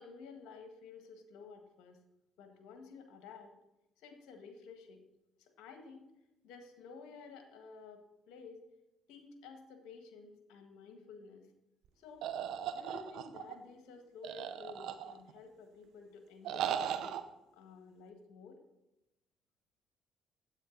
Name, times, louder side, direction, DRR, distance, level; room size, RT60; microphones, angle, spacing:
voice 1, 0.0-2.0 2.4-3.5 4.0-5.0 5.4-6.1 6.4-8.6 9.1-11.4 12.0-12.3 12.7-17.2 17.5-18.6, left 4 dB, 85° left, 5 dB, 1.6 m, -52 dB
sound 1, 12.2-13.5 14.2-15.4 16.4-17.2, right 9 dB, 75° right, 0.7 m, -37 dB
9.3 x 8.5 x 3.9 m, 0.89 s
supercardioid pair, 70°, 0 cm